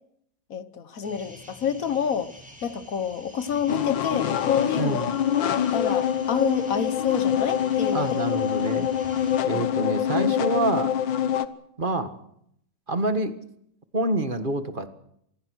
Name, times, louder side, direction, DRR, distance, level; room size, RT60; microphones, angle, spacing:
voice 1, 0.5-2.3 2.6-5.0 5.7-8.2 9.5-9.7 10.1-10.3, left 7 dB, 50° left, 12 dB, 1.5 m, -28 dB
sound 1, 1.0-9.4, equal, 5° right, 7.2 m, -48 dB
sound 2, 3.7-11.5, left 9 dB, 80° left, 1.8 m, -25 dB
voice 2, 4.8-5.1 7.9-8.9 9.4-11.0 11.8-12.1 12.9-13.4 13.9-14.9, right 2 dB, 30° right, 8 dB, 1.7 m, -27 dB
26.5 x 20.5 x 6.4 m, 0.73 s
omnidirectional pair, 2.0 m